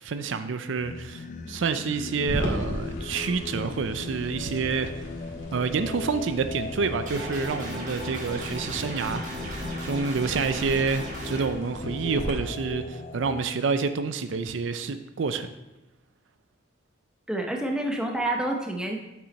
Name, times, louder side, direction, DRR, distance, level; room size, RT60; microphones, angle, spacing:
voice 1, 0.0-5.0 5.5-15.5, right 5 dB, 75° right, 10 dB, 0.4 m, -28 dB
Singing, 0.8-13.4, left 3 dB, 40° left, 0.3 m, -39 dB
sound 1, 2.3-12.3, equal, 80° left, 1.8 m, -37 dB
sound 2, 7.1-11.4, equal, 40° right, 1.6 m, -37 dB
voice 2, 17.3-19.0, right 1 dB, 5° right, 1 dB, 0.7 m, -28 dB
7.0 x 6.1 x 4.1 m, 0.99 s
head